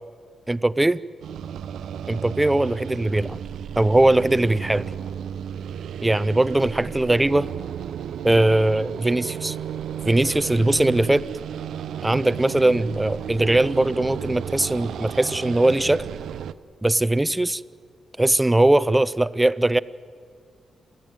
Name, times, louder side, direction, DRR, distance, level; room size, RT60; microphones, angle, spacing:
voice 1, 0.5-1.0 2.1-3.4 3.8-4.9 6.0-7.5 8.2-9.6 10.0-11.2 12.0-16.1 16.8-17.6 18.2-19.8, right 1 dB, 10° right, 17 dB, 0.5 m, -20 dB
sound 1, 1.2-16.5, right 9 dB, 80° right, 0.6 m, -33 dB
28.5 x 13.0 x 9.2 m, 2.2 s
cardioid pair, 115°, 0 cm